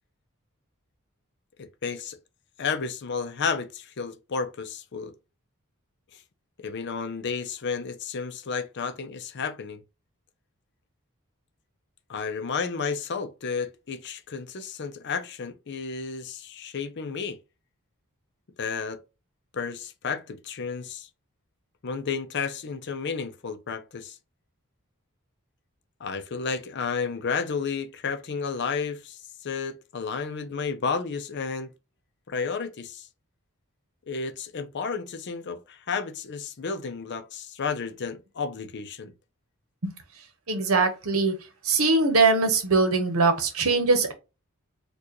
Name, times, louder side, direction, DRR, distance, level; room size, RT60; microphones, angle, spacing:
voice 1, 1.6-2.2 2.6-5.1 6.1-6.2 6.6-9.8 12.1-17.4 18.6-19.0 19.5-21.1 21.8-24.2 26.0-31.7 32.3-33.1 34.1-39.1, left 5 dB, 55° left, 0.5 m, -32 dB
voice 2, 40.5-41.3 41.6-44.1, right 3 dB, 70° right, 1.0 m, -22 dB
4.5 x 2.4 x 3.0 m
head